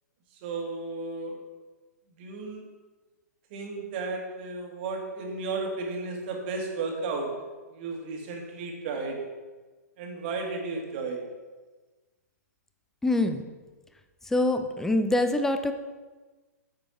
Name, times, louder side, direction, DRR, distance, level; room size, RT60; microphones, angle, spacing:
voice 1, 0.4-1.4 2.2-2.6 3.5-7.3 7.7-9.2 10.0-11.2, right 3 dB, 40° right, 1 dB, 2.0 m, -33 dB
voice 2, 13.0-13.4 14.3-15.7, left 2 dB, 5° left, 7 dB, 0.6 m, -25 dB
9.2 x 7.6 x 4.4 m, 1.3 s
figure-of-eight pair, 120°, 9 cm